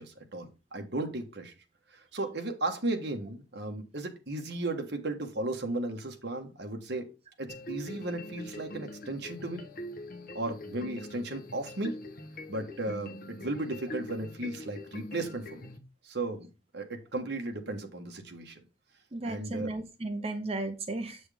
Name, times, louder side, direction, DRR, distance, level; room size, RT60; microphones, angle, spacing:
voice 1, 0.0-1.5 1.9-7.1 7.4-9.6 10.3-11.9 12.5-15.7 16.0-16.5 16.7-18.6 19.2-19.7, right 2 dB, 60° right, 3 dB, 1.5 m, -35 dB
sound 1, 7.5-15.8, left 1 dB, 50° left, 1.0 m, -43 dB
voice 2, 19.1-21.2, right 2 dB, 30° right, 8 dB, 0.7 m, -34 dB
7.6 x 6.2 x 3.5 m, 0.28 s
head